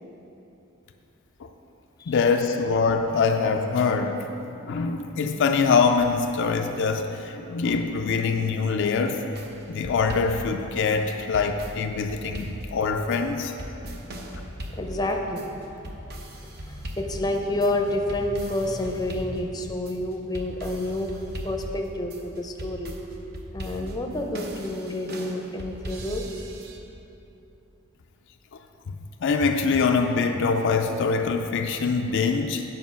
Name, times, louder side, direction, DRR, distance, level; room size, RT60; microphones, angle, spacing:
voice 1, 2.1-9.2 9.7-13.5 29.2-32.6, left 4 dB, 60° left, 4 dB, 0.4 m, -24 dB
sound 1, 9.3-26.8, equal, 50° right, 0.8 m, -39 dB
voice 2, 14.7-21.1 21.4-22.9 23.5-26.2, left 1 dB, 20° left, 2 dB, 0.6 m, -29 dB
9.5 x 5.3 x 5.6 m, 3.0 s
head